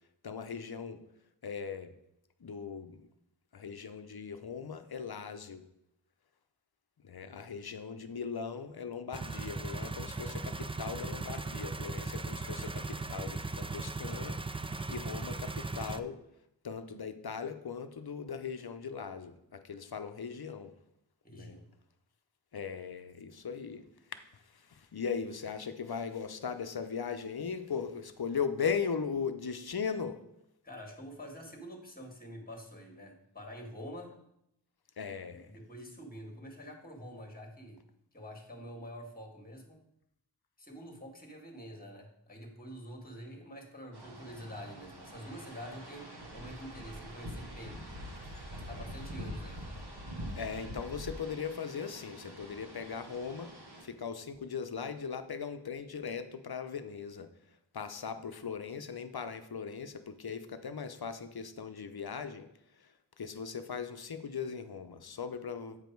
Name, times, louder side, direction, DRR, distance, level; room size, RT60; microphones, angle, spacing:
voice 1, 0.2-1.0 1.4-1.9 2.4-3.1 3.5-5.6 7.0-16.2 16.6-20.7 21.3-21.6 22.5-23.8 24.1-30.2 35.0-35.5 48.2-48.4 50.4-53.5 53.8-57.3 57.7-62.5 62.8-65.8, left 6 dB, 55° left, 9 dB, 0.7 m, -39 dB
sound 1, 9.1-16.0, right 3 dB, 15° right, 0.3 m, -38 dB
voice 2, 21.2-21.7 30.6-34.1 35.3-37.8 38.1-39.8 40.6-47.8 48.5-49.6, equal, 20° left, 2 dB, 1.8 m, -47 dB
sound 2, 43.9-53.8, equal, 60° right, 1.5 m, -45 dB
8.4 x 5.1 x 4.6 m, 0.80 s
wide cardioid pair, 60°, 44 cm